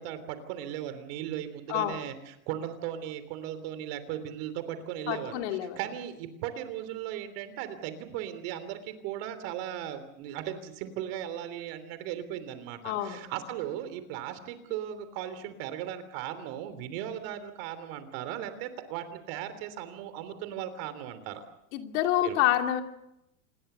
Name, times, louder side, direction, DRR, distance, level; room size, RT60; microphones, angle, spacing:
voice 1, 0.0-5.4 5.8-21.4 22.2-22.4, right 11 dB, 45° right, 11 dB, 3.3 m, -37 dB
voice 2, 1.7-2.0 5.1-5.8 12.8-13.2 21.7-22.8, left 12 dB, 60° left, 5 dB, 2.9 m, -27 dB
27.5 x 20.0 x 6.9 m, 0.82 s
supercardioid pair, 165°, 40 cm